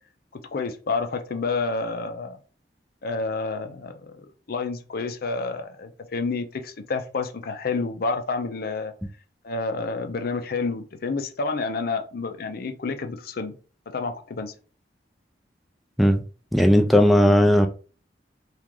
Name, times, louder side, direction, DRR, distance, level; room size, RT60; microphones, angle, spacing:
voice 1, 0.3-2.4 3.0-8.9 9.4-13.5 13.9-14.5, left 4 dB, 60° left, 0.5 m, -29 dB
voice 2, 16.5-17.7, equal, ahead, 0.3 m, -16 dB
3.0 x 2.4 x 3.6 m
head